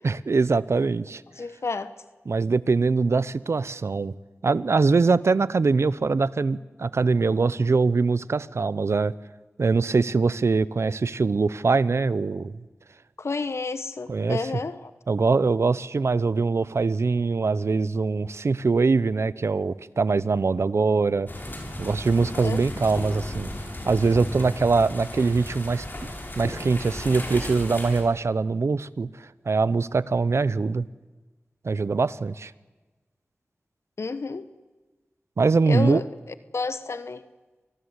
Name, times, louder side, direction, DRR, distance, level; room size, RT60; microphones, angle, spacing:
voice 1, 0.0-1.2 2.3-4.1 4.4-9.1 9.6-12.5 14.1-14.5 15.1-21.3 21.8-23.5 23.9-26.1 26.4-29.1 29.5-30.9 31.6-32.5 35.4-36.0, right 4 dB, 75° right, 0.8 m, -23 dB
voice 2, 1.4-1.9 13.2-14.9 22.3-22.6 34.0-34.5 35.7-36.0 36.5-37.2, left 4 dB, 75° left, 1.1 m, -30 dB
sound 1, 21.3-28.0, left 1 dB, 45° left, 6.5 m, -35 dB
26.0 x 20.0 x 8.2 m
wide cardioid pair, 45°, 5 cm